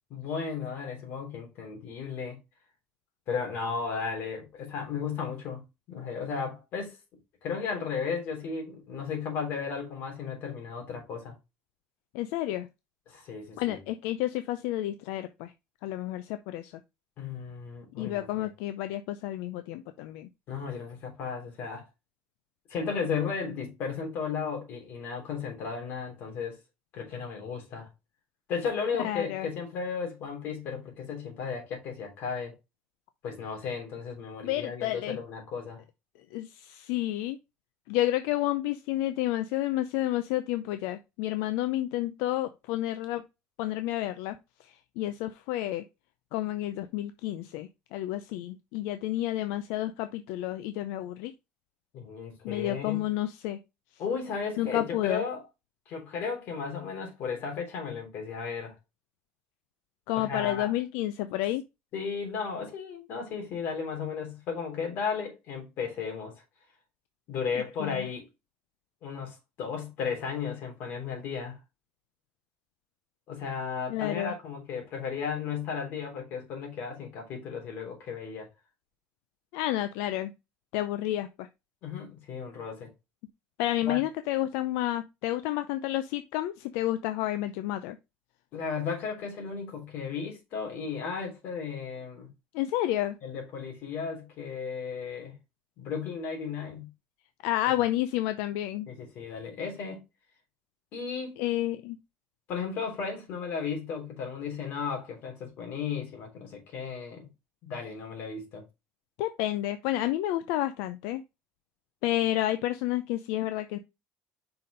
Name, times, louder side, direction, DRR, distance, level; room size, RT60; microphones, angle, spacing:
voice 1, 0.1-2.4 3.3-5.6 5.9-7.0 7.4-11.3 13.1-13.7 17.2-18.5 20.5-21.8 22.7-26.6 26.9-27.9 28.5-32.6 33.2-35.8 51.9-53.0 54.0-55.4 55.9-58.7 60.1-60.7 61.9-66.3 67.3-68.2 69.0-71.6 73.3-78.5 81.8-82.9 83.8-84.0 88.5-92.3 93.2-95.3 95.8-96.9 98.9-100.0 100.9-101.4 102.5-107.3 107.6-108.6, left 6 dB, 55° left, 3.4 m, -35 dB
voice 2, 12.1-12.7 13.6-15.5 15.8-16.7 18.0-20.3 29.0-29.5 34.4-35.2 36.3-37.4 37.9-43.2 43.6-45.8 46.3-51.3 52.4-53.6 54.6-55.2 60.1-61.6 67.8-68.1 73.9-74.3 79.5-80.3 80.7-81.5 83.6-88.0 92.5-93.2 97.4-98.9 101.4-102.0 109.2-111.2 112.0-113.8, left 14 dB, 85° left, 0.5 m, -30 dB
5.7 x 4.2 x 5.0 m
cardioid pair, 135°, 4 cm